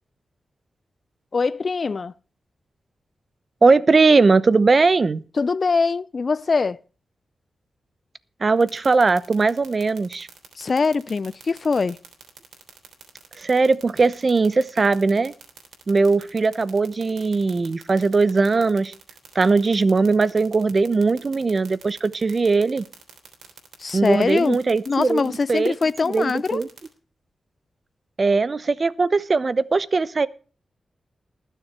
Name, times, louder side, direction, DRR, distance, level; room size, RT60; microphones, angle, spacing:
voice 1, 1.3-2.1 5.4-6.8 10.6-12.0 23.8-24.6 24.9-26.6, left 4 dB, 55° left, 0.6 m, -22 dB
voice 2, 3.6-5.2 8.4-10.3 13.4-15.3 15.9-18.9 19.3-22.9 23.9-25.7 26.0-26.7 28.2-30.3, right 4 dB, 50° right, 0.9 m, -19 dB
sound 1, 8.6-26.9, right 7 dB, 85° right, 3.2 m, -44 dB
20.0 x 6.9 x 4.5 m
cardioid pair, 45°, 0 cm